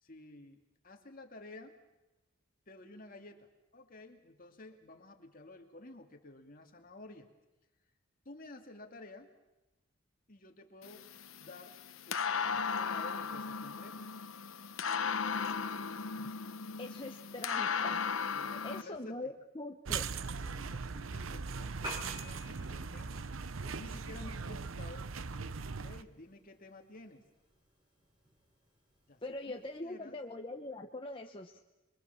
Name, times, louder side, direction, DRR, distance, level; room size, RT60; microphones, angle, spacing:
voice 1, 0.0-0.6 0.8-1.8 2.7-7.3 8.2-9.3 10.3-11.1 11.4-14.0 18.3-19.3 20.3-23.3 23.8-25.1 25.8-27.2 29.1-30.2, left 2 dB, 45° left, 3 dB, 2.5 m, -52 dB
sound 1, 10.8-18.8, left 6 dB, 85° left, 1.0 m, -36 dB
voice 2, 16.8-18.1 18.6-20.1 29.2-31.6, left 2 dB, 25° left, 2 dB, 1.1 m, -43 dB
sound 2, 19.9-26.0, right 5 dB, 80° right, 0.8 m, -40 dB
Piano, 21.7-29.8, left 1 dB, 25° right, 5.2 m, -52 dB
26.0 x 23.5 x 7.2 m, 1.0 s
head